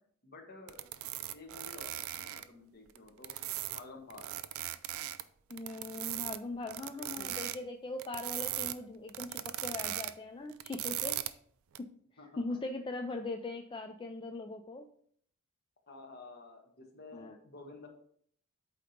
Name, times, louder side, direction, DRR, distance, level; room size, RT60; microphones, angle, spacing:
voice 1, 0.2-0.8 1.3-3.4 3.7-4.3 7.0-7.4 12.2-12.6 15.9-17.9, left 3 dB, 45° left, 3 dB, 1.2 m, -51 dB
sound 1, 0.7-2.4 2.9-3.8 4.1-5.2 5.5-6.4 6.7-7.6 8.0-8.7 9.1-10.1 10.5-11.3 11.7-11.8, right 14 dB, 65° right, 0.4 m, -38 dB
voice 2, 5.5-11.4 11.8-11.9 12.4-14.9 17.1-17.4, left 2 dB, 20° left, 5 dB, 0.3 m, -40 dB
8.3 x 2.9 x 5.0 m, 0.62 s
head